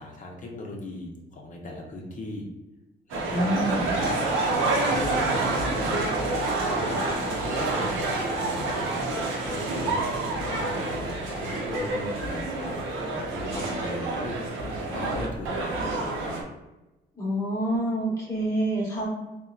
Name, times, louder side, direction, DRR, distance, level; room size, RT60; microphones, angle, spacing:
voice 1, 0.0-2.5 3.1-4.1 4.7-6.0 6.6-8.9 9.5-12.7 13.1-16.4, left 1 dB, 40° left, 0 dB, 0.6 m, -38 dB
sound 1, 3.1-16.4, right 2 dB, 80° right, 0.6 m, -28 dB
voice 2, 3.3-3.9 17.2-19.1, right 1 dB, 15° left, -5 dB, 1.0 m, -27 dB
2.7 x 2.1 x 2.4 m, 1.0 s
cardioid pair, 90°, 20 cm